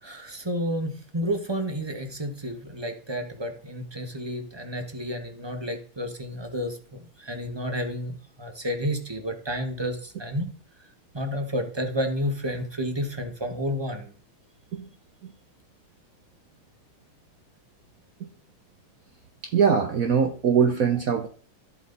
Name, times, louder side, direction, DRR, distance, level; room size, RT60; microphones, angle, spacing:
voice 1, 0.0-10.5 11.1-14.1, equal, 15° right, 1.4 m, -31 dB
voice 2, 19.4-21.3, right 6 dB, 55° right, 1.0 m, -22 dB
13.5 x 7.8 x 4.1 m
omnidirectional pair, 2.3 m